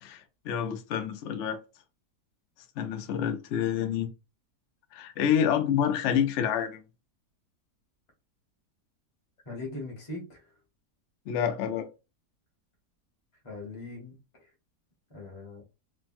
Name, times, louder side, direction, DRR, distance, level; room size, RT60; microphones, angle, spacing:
voice 1, 0.0-1.6 2.8-4.1 4.9-6.8 11.3-11.9, left 8 dB, 70° left, 0.6 m, -28 dB
voice 2, 9.5-10.4 13.4-14.2 15.1-15.6, left 2 dB, 25° left, 0.8 m, -40 dB
3.2 x 2.1 x 2.5 m
omnidirectional pair, 1.8 m